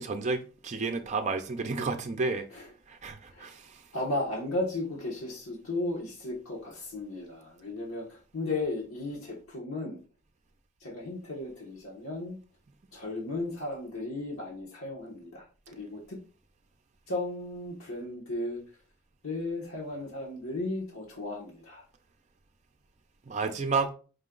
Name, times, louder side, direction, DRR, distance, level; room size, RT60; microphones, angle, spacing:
voice 1, 0.0-2.5 2.9-3.8 23.3-23.9, right 4 dB, 35° right, 0.5 m, -31 dB
voice 2, 3.9-10.0 10.8-12.4 12.9-16.2 17.1-18.6 19.2-21.8, left 2 dB, 75° left, 1.2 m, -35 dB
5.2 x 2.3 x 3.7 m
head